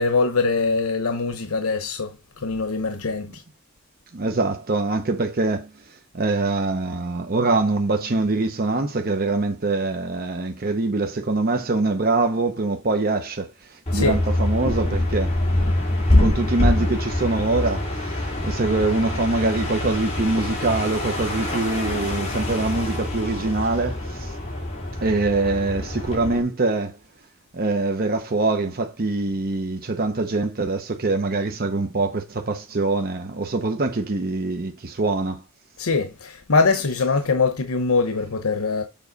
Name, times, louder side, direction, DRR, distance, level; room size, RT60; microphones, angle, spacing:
voice 1, 0.0-3.4 13.9-14.2 35.8-38.8, left 4 dB, 85° left, 0.9 m, -23 dB
voice 2, 4.1-5.7 6.1-15.3 16.2-24.4 25.0-27.0 27.5-35.4, right 3 dB, 45° right, 0.8 m, -24 dB
sound 1, 13.9-26.4, left 1 dB, 30° left, 3.0 m, -25 dB
7.2 x 5.7 x 4.0 m
head